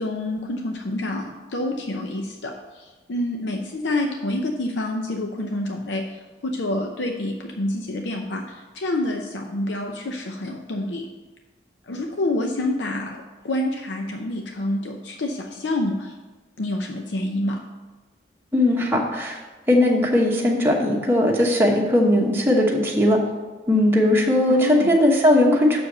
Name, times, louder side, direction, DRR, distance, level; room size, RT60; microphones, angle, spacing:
voice 1, 0.0-11.1 11.9-16.1 16.6-17.6 24.5-25.1, left 1 dB, 85° left, 3 dB, 0.6 m, -27 dB
voice 2, 18.5-19.4 19.7-23.2 23.7-25.8, left 1 dB, 15° right, -2 dB, 1.0 m, -18 dB
7.0 x 4.8 x 6.6 m, 1.2 s
head